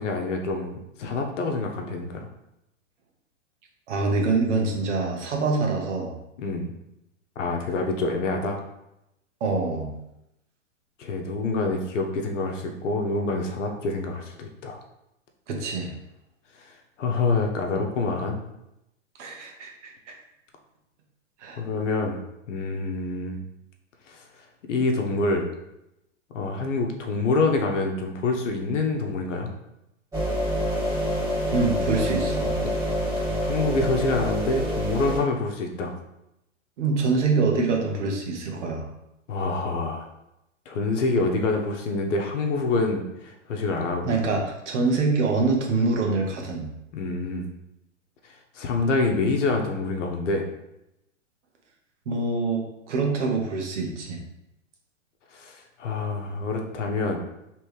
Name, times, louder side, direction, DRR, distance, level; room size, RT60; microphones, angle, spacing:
voice 1, 0.0-2.3 6.4-6.7 7.4-8.6 11.0-14.8 17.0-18.4 21.6-22.2 22.5-23.4 24.1-24.2 24.7-25.5 26.3-29.5 32.9-35.9 39.3-40.0 40.7-44.2 46.9-47.5 48.5-50.5 55.3-57.2, left 3 dB, 70° left, 3 dB, 1.0 m, -26 dB
voice 2, 3.9-6.1 9.4-9.9 15.5-15.9 19.2-20.1 21.4-21.6 31.5-32.5 36.8-38.9 44.0-46.7 52.1-54.2, right 3 dB, 65° right, 1 dB, 1.2 m, -25 dB
sound 1, 30.1-35.2, equal, 10° right, 1.7 m, -27 dB
3.4 x 3.3 x 4.6 m, 0.87 s
hypercardioid pair, 125°, 38 cm